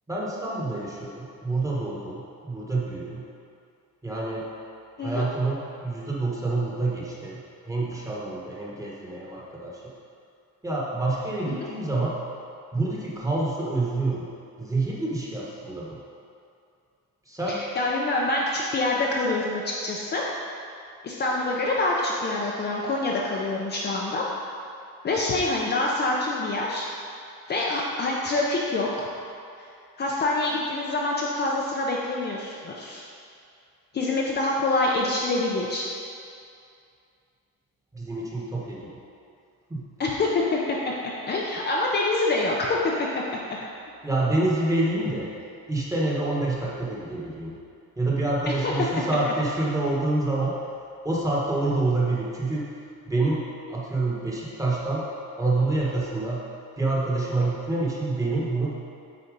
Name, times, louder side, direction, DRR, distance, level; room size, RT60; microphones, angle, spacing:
voice 1, 0.1-3.2 4.0-4.4 5.0-7.4 7.6-9.8 10.6-12.2 12.7-14.3 14.6-16.0 17.3-17.6 37.9-39.0 39.7-39.8 44.0-45.3 45.7-47.5 48.0-50.6 51.0-52.7 53.1-53.4 53.7-55.1 55.4-56.4 56.8-58.7, right 2 dB, 10° right, -6 dB, 1.3 m, -27 dB
voice 2, 17.5-20.2 21.0-24.2 25.0-26.9 27.5-29.1 29.6-29.7 30.0-33.0 33.9-35.9 40.0-40.8 41.3-42.8 48.5-48.7, left 2 dB, 30° left, -3 dB, 0.6 m, -26 dB
8.6 x 4.3 x 5.2 m, 2.4 s
cardioid pair, 170°, 33 cm